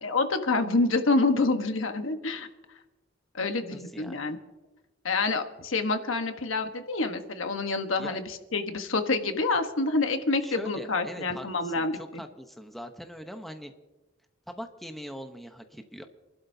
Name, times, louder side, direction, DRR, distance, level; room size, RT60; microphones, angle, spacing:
voice 1, 0.0-2.5 3.3-4.4 5.0-12.2, left 3 dB, 75° left, 7 dB, 1.2 m, -27 dB
voice 2, 3.7-4.2 8.0-8.2 10.4-13.7 14.5-16.0, equal, ahead, 5 dB, 0.8 m, -41 dB
28.0 x 12.0 x 2.7 m, 1.1 s
head